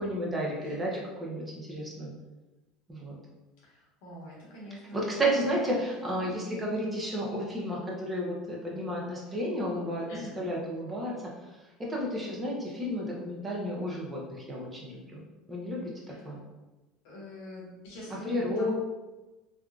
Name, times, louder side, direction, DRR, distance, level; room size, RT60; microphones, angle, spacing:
voice 1, 0.0-2.1 2.9-3.2 4.9-11.1 11.8-14.2 14.5-15.0 15.5-15.9 16.2-16.4 18.2-18.7, equal, 20° right, -3 dB, 0.8 m, -32 dB
voice 2, 3.6-5.0 5.4-5.6 6.1-6.3 10.1-10.4 16.1-16.3 17.0-18.7, left 1 dB, 75° left, -5 dB, 1.2 m, -45 dB
3.5 x 2.3 x 2.4 m, 1.1 s
supercardioid pair, 100°, 0 cm